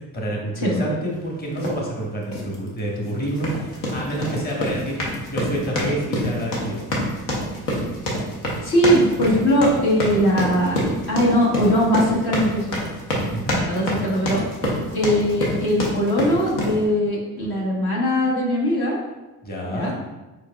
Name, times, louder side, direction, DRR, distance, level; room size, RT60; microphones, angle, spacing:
voice 1, 0.1-5.0 5.3-6.9 13.3-13.6 19.4-19.9, right 1 dB, 20° left, -2 dB, 1.3 m, -28 dB
sound 1, 1.6-1.8 2.3-2.5 3.3-16.8, equal, 85° left, 1.0 m, -26 dB
voice 2, 8.6-12.8 13.6-14.5 14.9-19.0 19.7-19.9, equal, 55° left, -4 dB, 1.4 m, -20 dB
4.9 x 4.5 x 2.3 m, 1.1 s
hypercardioid pair, 55°, 45 cm